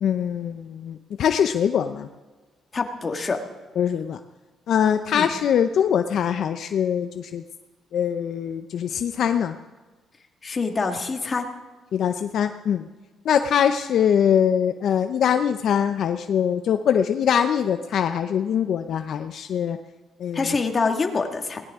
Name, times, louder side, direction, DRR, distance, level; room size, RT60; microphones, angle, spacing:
voice 1, 0.0-2.1 3.8-4.2 4.7-7.4 7.9-9.6 11.9-12.8 13.3-19.8 20.2-20.5, left 8 dB, 60° left, 8 dB, 0.6 m, -23 dB
voice 2, 2.7-3.4 5.1-5.3 10.4-11.5 20.3-21.6, left 4 dB, 30° left, 4 dB, 1.7 m, -25 dB
19.5 x 18.0 x 3.6 m, 1.3 s
cardioid pair, 120°, 0 cm